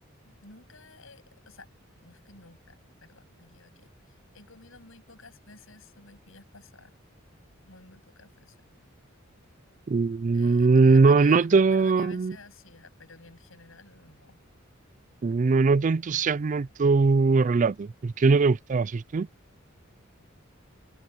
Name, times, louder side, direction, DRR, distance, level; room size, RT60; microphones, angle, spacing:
voice 1, 0.2-1.7 2.0-6.9 7.6-8.6 10.3-14.4, left 3 dB, 75° left, 7.8 m, -52 dB
voice 2, 9.9-12.4 15.2-19.3, right 4 dB, 40° right, 0.4 m, -21 dB
head